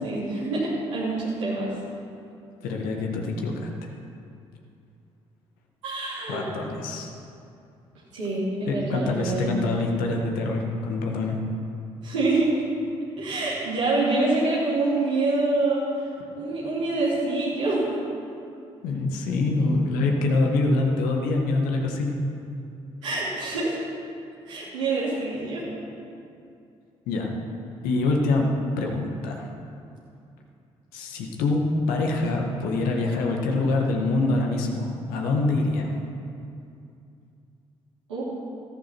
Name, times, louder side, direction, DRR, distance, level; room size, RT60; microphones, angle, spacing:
voice 1, 0.0-1.7 5.8-6.4 8.1-9.5 12.0-12.5 13.2-15.9 16.3-17.9 23.0-23.8 24.5-25.6 38.1-38.2, right 2 dB, 90° right, -10 dB, 3.0 m, -26 dB
voice 2, 2.6-3.7 6.3-7.1 8.7-11.4 18.8-22.2 27.1-27.3 27.8-28.5 28.8-29.5 30.9-31.6 31.9-35.9, left 2 dB, 75° left, 1 dB, 1.7 m, -25 dB
14.5 x 12.5 x 4.5 m, 2.6 s
hypercardioid pair, 45°, 15 cm